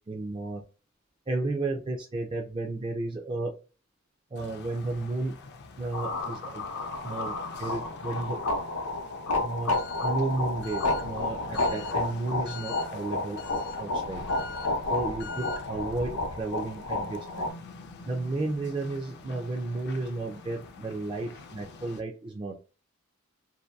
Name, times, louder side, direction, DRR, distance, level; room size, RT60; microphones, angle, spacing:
voice 1, 0.1-0.6 1.3-3.5 4.3-5.4 5.8-6.6 7.0-8.4 9.4-13.4 13.8-14.2 14.9-17.5 18.0-22.7, right 2 dB, 25° right, 0 dB, 0.3 m, -33 dB
sound 1, 4.3-22.0, left 4 dB, 50° left, 0.4 m, -44 dB
sound 2, 5.9-17.5, left 2 dB, 85° left, 0.7 m, -31 dB
2.6 x 2.2 x 2.2 m, 0.34 s
head